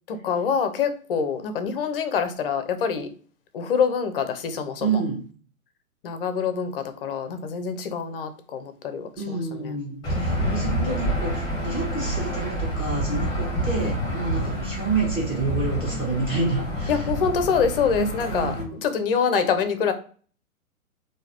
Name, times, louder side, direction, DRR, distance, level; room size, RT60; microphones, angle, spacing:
voice 1, 0.1-3.1 3.5-5.0 6.0-9.8 10.1-10.7 13.7-13.9 14.6-14.7 16.9-18.6 18.8-19.9, left 6 dB, 40° left, 9 dB, 0.6 m, -26 dB
voice 2, 4.8-5.3 9.2-17.1 18.0-18.7, right 3 dB, 15° right, -4 dB, 1.5 m, -29 dB
Aircraft / Engine, 10.0-18.6, right 1 dB, 10° left, 1.4 m, -28 dB
3.7 x 2.7 x 2.9 m, 0.42 s
figure-of-eight pair, 120°, 42 cm